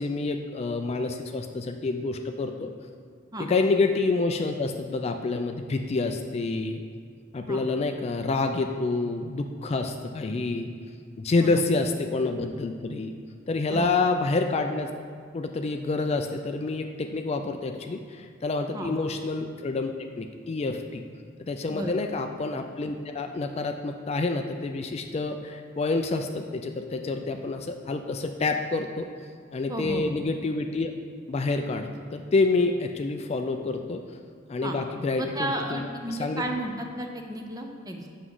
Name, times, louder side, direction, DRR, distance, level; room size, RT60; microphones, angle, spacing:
voice 1, 0.0-2.7 3.4-6.8 7.3-10.7 11.2-13.1 13.5-14.9 15.3-21.0 21.4-29.1 29.5-30.9 31.3-34.0 34.5-36.4, left 3 dB, 30° left, 6 dB, 0.3 m, -28 dB
voice 2, 29.7-30.1 34.6-34.8 35.2-38.1, right 1 dB, 20° right, 3 dB, 0.6 m, -33 dB
8.0 x 6.0 x 3.8 m, 2.1 s
head